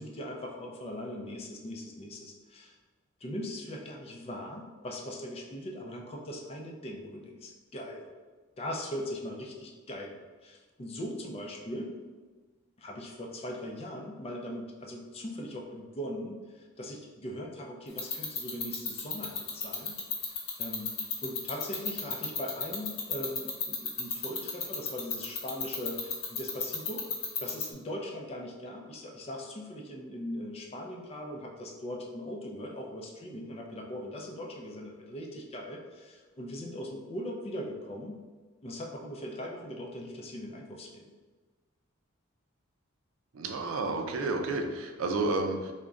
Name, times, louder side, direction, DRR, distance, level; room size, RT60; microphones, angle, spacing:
voice 1, 0.0-2.8 3.2-8.1 8.6-12.0 12.8-19.9 20.6-20.9 21.2-27.1 27.4-38.2 38.6-41.1, equal, 30° left, 0 dB, 0.4 m, -40 dB
sound 1, 18.0-27.6, left 7 dB, 80° left, 0.7 m, -31 dB
voice 2, 43.3-45.7, right 2 dB, 80° right, 4 dB, 0.4 m, -31 dB
3.6 x 2.1 x 3.5 m, 1.3 s
head